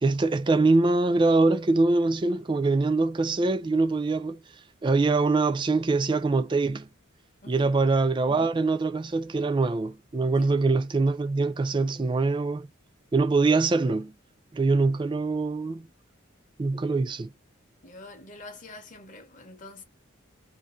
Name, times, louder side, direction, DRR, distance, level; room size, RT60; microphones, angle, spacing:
voice 1, 0.0-4.4 4.8-6.9 7.5-12.7 13.1-14.1 14.5-15.9 16.6-17.3, right 3 dB, 25° right, 0.3 m, -23 dB
voice 2, 7.4-7.7 10.4-10.5 17.8-19.8, left 2 dB, 40° left, 0.7 m, -45 dB
2.6 x 2.5 x 2.4 m
head